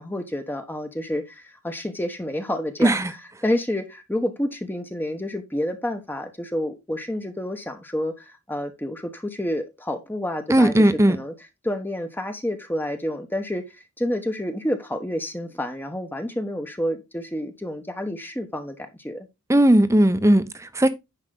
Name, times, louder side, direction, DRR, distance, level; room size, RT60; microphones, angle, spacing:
voice 1, 0.0-3.0 3.4-10.7 11.1-11.3 11.6-19.3, left 1 dB, 10° left, 1.0 m, -29 dB
voice 2, 2.8-3.1 10.5-11.2 19.5-20.9, right 1 dB, 15° right, 0.8 m, -17 dB
10.0 x 5.6 x 3.8 m
head